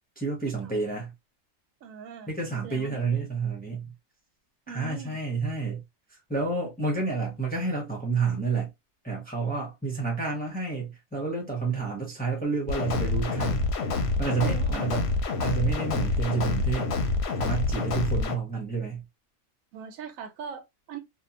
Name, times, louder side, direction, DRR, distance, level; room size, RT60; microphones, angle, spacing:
voice 1, 0.2-1.1 2.3-3.9 4.7-5.8 6.3-8.7 9.0-13.7 14.2-15.1 15.4-16.9 17.4-19.0, right 4 dB, 10° left, 0.7 m, -29 dB
voice 2, 1.8-2.3 2.6-3.1 4.7-5.1 14.4-15.1 19.7-21.0, right 6 dB, 85° right, 1.0 m, -41 dB
sound 1, 12.7-18.3, left 3 dB, 60° left, 0.8 m, -27 dB
2.8 x 2.3 x 2.4 m
omnidirectional pair, 1.4 m